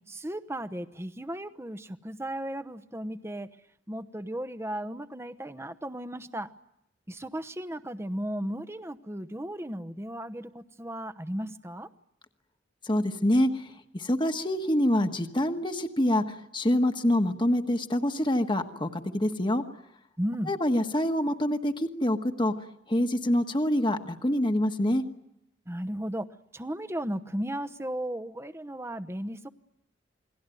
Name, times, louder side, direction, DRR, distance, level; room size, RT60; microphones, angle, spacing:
voice 1, 0.1-3.5 3.9-6.5 7.1-11.9 20.2-20.5 25.7-26.3 26.5-29.5, right 1 dB, 15° right, 10 dB, 1.0 m, -35 dB
voice 2, 12.9-13.6 13.9-19.6 20.5-22.5 22.9-25.0, left 1 dB, 25° left, 6 dB, 1.4 m, -26 dB
29.0 x 21.0 x 9.2 m, 0.85 s
head